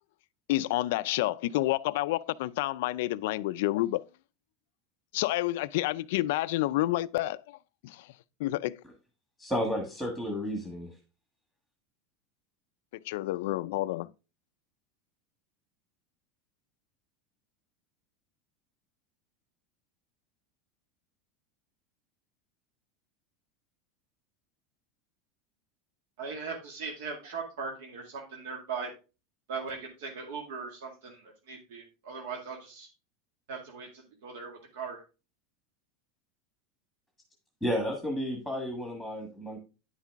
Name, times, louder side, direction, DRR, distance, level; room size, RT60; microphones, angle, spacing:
voice 1, 0.5-4.0 5.1-7.6 7.8-8.1 8.4-8.8 13.0-14.1, left 16 dB, 65° left, 0.4 m, -29 dB
voice 2, 9.4-10.9 37.6-39.6, equal, ahead, 1.4 m, -32 dB
voice 3, 26.2-28.9 29.5-32.9 33.5-35.0, right 5 dB, 70° right, 2.0 m, -39 dB
9.7 x 5.7 x 3.5 m
supercardioid pair, 175°, 0 cm